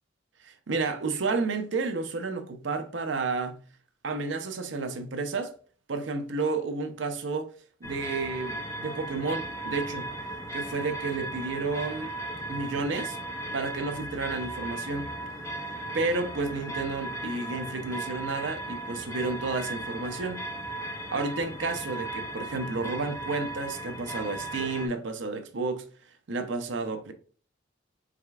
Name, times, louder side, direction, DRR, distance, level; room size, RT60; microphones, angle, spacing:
voice 1, 0.4-3.6 4.0-5.5 5.9-7.5 7.8-10.1 10.5-12.1 12.5-13.2 13.5-15.1 15.9-20.4 21.1-25.8 26.3-27.1, right 3 dB, 65° right, 0.6 m, -31 dB
sound 1, 7.8-24.9, right 1 dB, 15° left, 0.7 m, -36 dB
4.9 x 3.3 x 2.3 m
head